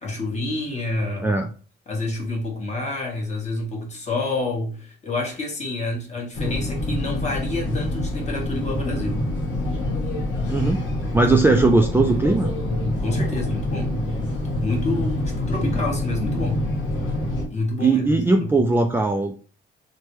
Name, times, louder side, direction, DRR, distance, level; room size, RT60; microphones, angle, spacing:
voice 1, 0.0-1.4 1.9-9.2 13.0-14.0 14.6-16.7 17.5-18.7, left 2 dB, 35° left, 1.2 m, -28 dB
sound 1, 6.3-17.4, left 1 dB, 80° left, 1.2 m, -26 dB
voice 2, 10.5-10.8 11.1-12.5 17.8-19.4, right 3 dB, 10° right, 0.3 m, -19 dB
3.2 x 2.1 x 3.0 m
cardioid pair, 90°, 20 cm